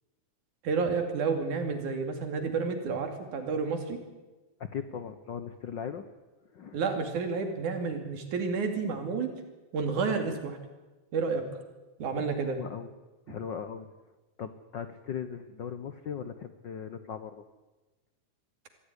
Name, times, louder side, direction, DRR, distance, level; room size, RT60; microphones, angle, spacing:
voice 1, 0.6-4.0 6.7-9.3 9.7-10.6 11.1-11.5 12.0-12.6, right 4 dB, 85° right, 6 dB, 4.0 m, -30 dB
voice 2, 4.6-6.1 6.5-6.8 12.6-12.9 13.3-13.9 14.4-17.4, left 7 dB, 75° left, 10 dB, 1.0 m, -38 dB
23.5 x 15.0 x 9.9 m, 1.1 s
omnidirectional pair, 3.4 m